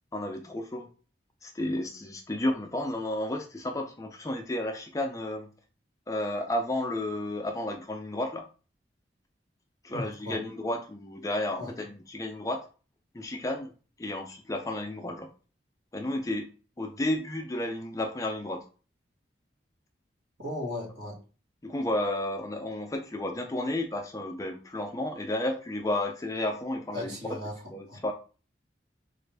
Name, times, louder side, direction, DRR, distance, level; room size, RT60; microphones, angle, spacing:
voice 1, 0.1-0.9 1.4-5.5 6.1-8.5 9.8-12.6 13.1-13.7 14.0-15.3 15.9-16.5 16.8-18.7 21.6-27.2 27.7-28.1, left 1 dB, 20° left, 4 dB, 0.4 m, -32 dB
voice 2, 9.9-10.4 11.6-11.7 20.4-21.2 26.9-27.5 27.9-28.0, left 1 dB, 65° right, -3 dB, 1.6 m, -36 dB
4.0 x 2.4 x 3.3 m, 0.36 s
head